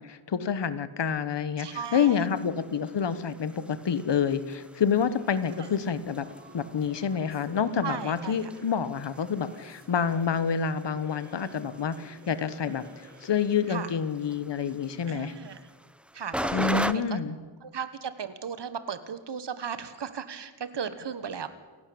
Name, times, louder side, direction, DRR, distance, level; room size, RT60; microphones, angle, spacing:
voice 1, 0.0-6.3 6.5-12.8 13.2-15.3 16.5-17.4, left 7 dB, 65° left, 14 dB, 1.3 m, -28 dB
voice 2, 1.6-2.3 5.6-5.7 7.8-8.4 13.7-13.9 15.1-15.6 16.1-17.2 17.6-21.5, right 7 dB, 60° right, 12 dB, 1.5 m, -36 dB
sound 1, 1.7-16.9, equal, ahead, 0.6 m, -41 dB
Singing / Musical instrument, 5.1-14.0, right 2 dB, 20° right, 2.9 m, -53 dB
28.5 x 11.5 x 8.7 m, 1.4 s
wide cardioid pair, 125°, 46 cm